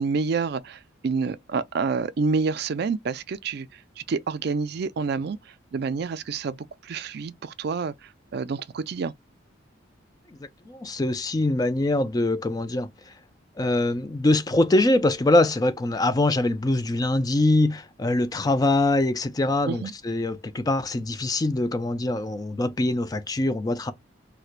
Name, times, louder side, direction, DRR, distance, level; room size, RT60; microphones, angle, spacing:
voice 1, 0.0-9.1 19.7-19.9, right 4 dB, 55° right, 0.4 m, -28 dB
voice 2, 10.7-12.9 13.6-23.9, left 2 dB, 20° left, 0.3 m, -23 dB
4.2 x 2.2 x 2.4 m
head